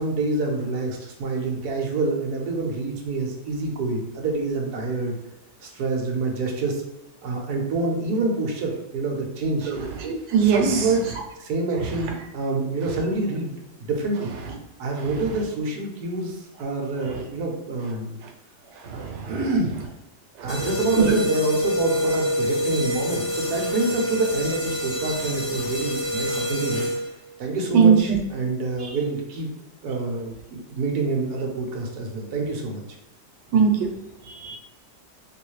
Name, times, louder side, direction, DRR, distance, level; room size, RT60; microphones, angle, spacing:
voice 1, 0.0-5.2 5.6-6.8 7.2-9.7 10.4-11.1 11.4-14.3 14.8-18.2 18.9-19.7 20.4-26.9 27.4-29.5 29.8-32.8, right 3 dB, 70° right, 0 dB, 1.2 m, -27 dB
voice 2, 9.6-10.8 18.8-19.3 20.4-20.5 21.0-21.2 27.7-28.2 33.5-33.8 34.3-34.6, right 6 dB, 90° right, 2 dB, 1.3 m, -20 dB
sound 1, 20.5-27.3, equal, 60° left, 1.5 m, -26 dB
3.1 x 3.1 x 3.1 m, 0.98 s
omnidirectional pair, 1.8 m